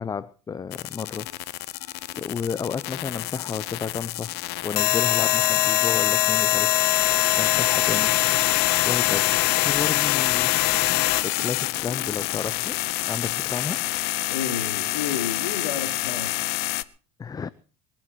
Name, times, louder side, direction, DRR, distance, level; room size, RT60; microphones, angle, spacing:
voice 1, 0.0-1.3 2.1-4.3 4.6-6.8 7.4-8.3 8.8-9.3 9.6-10.6 11.2-12.8 13.1-13.9 17.2-17.5, left 6 dB, 20° left, 18 dB, 0.6 m, -32 dB
sound 1, 0.7-16.8, left 18 dB, 60° left, 0.9 m, -24 dB
voice 2, 14.3-16.7, left 8 dB, 85° left, 5 dB, 3.2 m, -31 dB
22.0 x 11.5 x 4.7 m, 0.39 s
hypercardioid pair, 90°, 19 cm